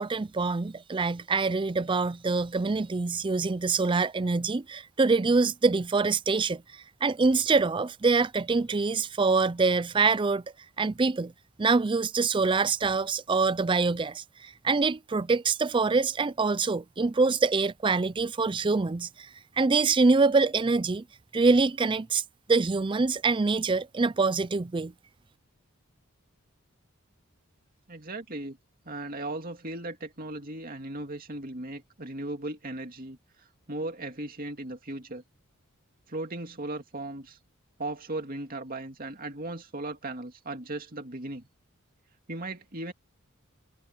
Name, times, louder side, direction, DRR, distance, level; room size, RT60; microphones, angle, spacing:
voice 1, 0.0-10.4 10.8-11.3 11.6-19.3 19.6-21.0 21.3-22.2 22.5-24.9, right 4 dB, 25° right, 0.4 m, -25 dB
voice 2, 27.9-28.6 28.8-35.2 36.1-37.4 37.8-41.4 42.3-42.9, right 2 dB, 45° right, 2.5 m, -37 dB
head